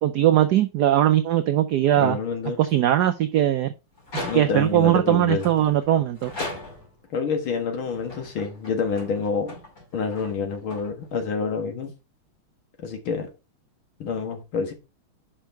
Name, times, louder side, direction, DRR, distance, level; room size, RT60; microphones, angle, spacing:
voice 1, 0.0-2.2 2.6-3.7 4.1-6.3, right 12 dB, 80° right, 0.9 m, -20 dB
voice 2, 2.0-2.6 4.2-5.5 7.1-9.5 9.9-11.9 12.8-13.3 14.0-14.7, left 5 dB, 70° left, 2.3 m, -27 dB
sound 1, 4.0-4.8 5.4-7.1 7.7-11.3, left 2 dB, 40° left, 3.0 m, -39 dB
6.3 x 5.6 x 4.4 m
omnidirectional pair, 2.4 m